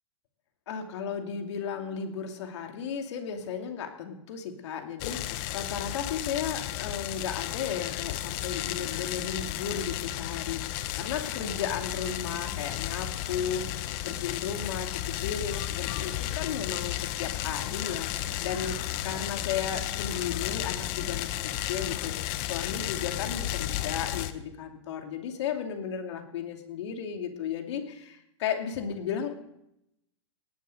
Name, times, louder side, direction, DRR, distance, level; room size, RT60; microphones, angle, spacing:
voice 1, 0.7-18.7 19.0-29.3, left 7 dB, 70° left, 5 dB, 2.6 m, -35 dB
sound 1, 5.0-24.3, left 13 dB, 50° left, 1.2 m, -33 dB
18.5 x 10.0 x 6.6 m, 0.81 s
hypercardioid pair, 125°, 15 cm